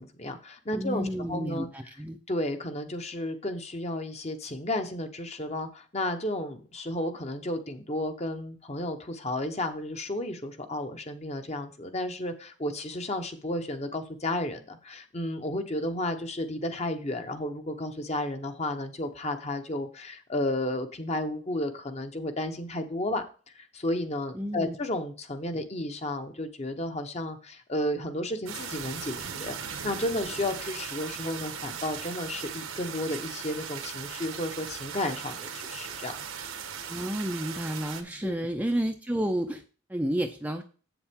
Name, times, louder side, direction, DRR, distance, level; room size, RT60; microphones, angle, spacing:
voice 1, 0.0-1.7 2.3-23.2 23.5-36.2 38.2-38.3, left 1 dB, 30° left, 7 dB, 0.9 m, -32 dB
voice 2, 0.7-2.2 24.3-24.8 36.9-39.6 39.9-40.6, equal, 5° right, 5 dB, 0.5 m, -31 dB
sound 1, 28.5-38.0, right 7 dB, 80° right, 1.2 m, -38 dB
8.0 x 7.1 x 3.6 m, 0.38 s
head